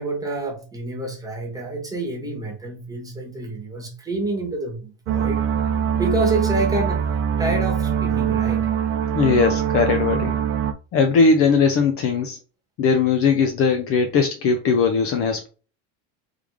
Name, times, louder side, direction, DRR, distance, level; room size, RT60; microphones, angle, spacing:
voice 1, 0.0-5.4 5.9-7.0 7.4-8.7, right 2 dB, 10° right, 1.2 m, -28 dB
sound 1, 5.1-10.7, right 8 dB, 40° right, 0.4 m, -23 dB
voice 2, 9.1-10.3 10.9-12.4 12.8-15.5, left 5 dB, 40° left, 0.5 m, -19 dB
3.4 x 3.3 x 3.5 m
cardioid pair, 160°, 38 cm